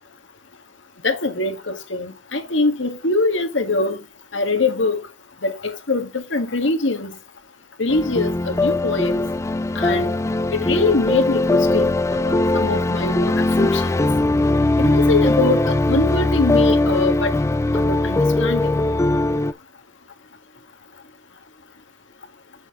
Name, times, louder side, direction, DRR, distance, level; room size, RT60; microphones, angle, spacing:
voice 1, 1.0-4.0 4.3-5.0 5.4-7.1 7.8-9.2 9.8-10.1 10.5-13.9 14.8-17.3 17.7-18.8, left 3 dB, 85° left, 1.7 m, -23 dB
sound 1, 7.9-19.5, left 2 dB, 15° left, 0.4 m, -20 dB
8.6 x 6.8 x 3.8 m
head